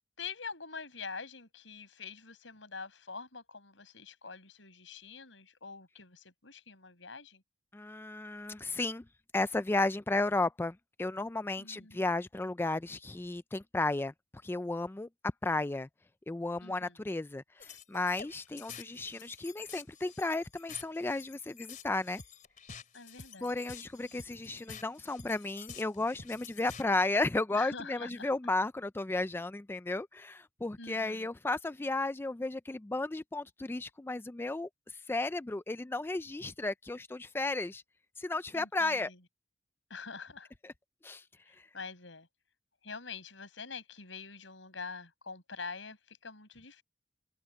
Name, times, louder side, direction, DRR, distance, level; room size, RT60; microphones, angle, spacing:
voice 1, 0.2-7.4 11.6-12.0 16.6-17.0 22.9-23.5 27.5-28.3 30.8-31.3 38.5-39.2 39.9-40.5 41.5-42.3 42.8-46.8, left 5 dB, 85° left, 5.5 m, -45 dB
voice 2, 7.7-9.0 9.3-14.1 14.4-15.1 15.4-15.9 16.3-22.2 23.4-34.7 35.1-37.8 38.2-39.1 41.0-41.2, left 2 dB, 10° left, 0.3 m, -33 dB
sound 1, 17.6-26.9, left 6 dB, 45° left, 2.8 m, -50 dB
open air
head